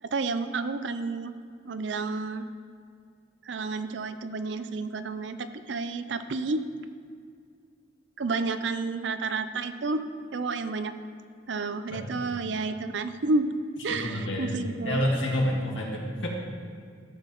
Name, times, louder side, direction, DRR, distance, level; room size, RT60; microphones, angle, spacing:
voice 1, 0.0-1.3 1.6-2.5 3.4-5.4 5.7-6.6 8.2-10.0 10.3-10.9 11.5-13.5 13.8-15.0, right 3 dB, 70° right, 10 dB, 0.5 m, -30 dB
voice 2, 13.9-14.6 14.8-16.3, left 1 dB, 85° left, -2 dB, 1.9 m, -28 dB
13.5 x 7.7 x 3.0 m, 2.2 s
head